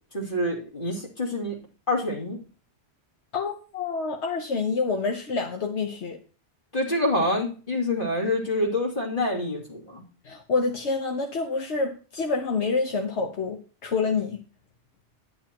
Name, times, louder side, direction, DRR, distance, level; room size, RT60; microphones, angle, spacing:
voice 1, 0.1-1.6 1.9-2.4 6.7-10.0, left 1 dB, 50° left, -2 dB, 3.0 m, -26 dB
voice 2, 3.3-6.2 10.2-14.4, left 4 dB, 80° left, 3 dB, 1.3 m, -27 dB
11.0 x 10.5 x 3.0 m, 0.37 s
omnidirectional pair, 1.1 m